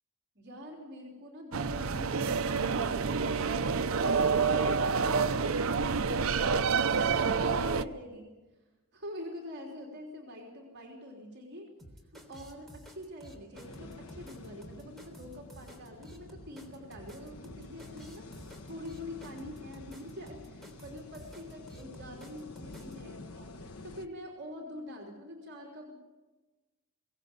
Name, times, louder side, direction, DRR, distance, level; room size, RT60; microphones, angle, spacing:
voice 1, 0.4-3.3 3.7-8.3 8.9-11.7 12.1-18.3 18.6-26.0, left 1 dB, 50° right, 0 dB, 3.4 m, -45 dB
sound 1, 1.5-7.8, right 5 dB, 70° right, 0.7 m, -28 dB
sound 2, 11.8-22.9, equal, ahead, 3.4 m, -51 dB
sound 3, 13.5-24.1, left 2 dB, 80° left, 1.2 m, -49 dB
23.0 x 17.5 x 8.3 m, 1.2 s
head